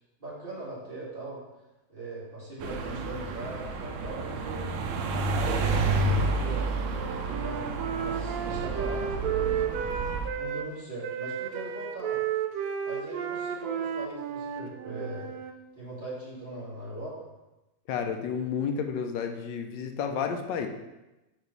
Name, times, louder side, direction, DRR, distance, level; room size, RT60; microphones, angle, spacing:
voice 1, 0.2-1.4 1.9-4.7 5.2-5.6 5.9-9.8 10.4-12.2 12.8-15.3 15.8-17.3, right 2 dB, 30° right, -8 dB, 2.3 m, -40 dB
sound 1, 2.6-10.3, right 3 dB, 90° right, 1.3 m, -30 dB
Wind instrument woodwind instrument, 6.9-10.7 11.0-15.5, right 8 dB, 70° right, 0.9 m, -33 dB
voice 2, 17.9-20.7, left 6 dB, 85° left, 5 dB, 1.3 m, -31 dB
5.0 x 4.6 x 5.3 m, 1.0 s
omnidirectional pair, 1.9 m